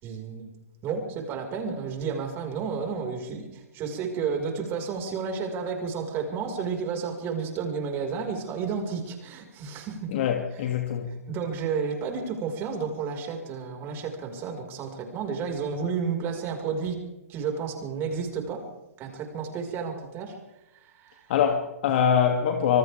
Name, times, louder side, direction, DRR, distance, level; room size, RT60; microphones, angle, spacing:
voice 1, 0.0-0.5 0.8-10.1 11.3-17.0 17.3-18.7 19.0-20.4 20.8-21.3, right 5 dB, 25° right, 5.3 m, -31 dB
voice 2, 10.1-11.1 21.3-22.8, left 8 dB, 45° left, 2.6 m, -23 dB
27.0 x 26.5 x 3.6 m
figure-of-eight pair, 120°, 8 cm